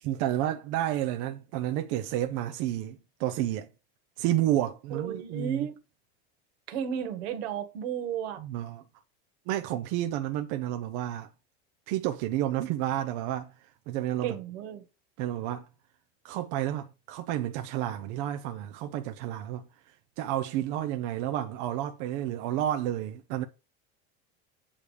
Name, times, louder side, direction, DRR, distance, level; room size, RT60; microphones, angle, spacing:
voice 1, 0.0-3.7 4.2-5.7 8.4-8.8 9.5-11.3 11.9-13.5 13.9-14.4 15.2-15.7 16.2-19.6 20.2-23.4, right 12 dB, 40° right, 0.6 m, -30 dB
voice 2, 4.9-5.8 6.7-8.4 14.2-14.8, right 8 dB, 70° right, 1.7 m, -33 dB
8.6 x 3.5 x 6.5 m
supercardioid pair, 170°, 32 cm